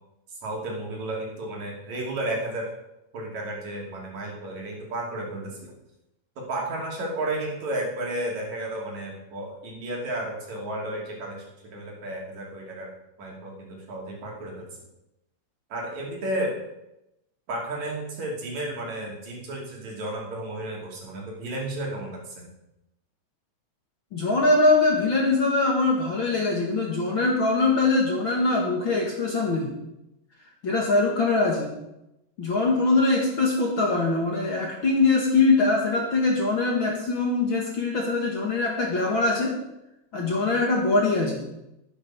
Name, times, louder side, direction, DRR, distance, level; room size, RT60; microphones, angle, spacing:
voice 1, 0.4-2.7 3.1-5.7 6.4-11.5 11.7-12.9 13.2-14.7 15.7-16.5 17.5-22.5, right 1 dB, 60° right, -2 dB, 3.9 m, -32 dB
voice 2, 24.1-29.8 30.6-31.7 32.4-39.6 40.1-41.5, left 3 dB, 45° left, -1 dB, 2.2 m, -22 dB
11.5 x 9.8 x 6.0 m, 0.89 s
omnidirectional pair, 3.7 m